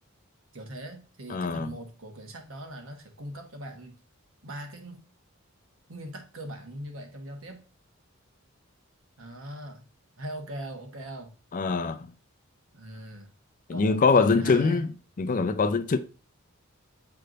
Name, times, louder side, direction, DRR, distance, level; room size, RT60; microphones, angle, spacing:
voice 1, 0.5-3.9 4.4-5.0 5.9-7.6 9.2-9.8 10.2-11.3 12.7-13.3 13.7-14.8, right 1 dB, 65° right, 1.3 m, -40 dB
voice 2, 1.3-1.8 11.5-12.1 13.7-14.9 15.2-16.0, left 4 dB, 40° left, 0.4 m, -23 dB
7.9 x 3.3 x 3.8 m
head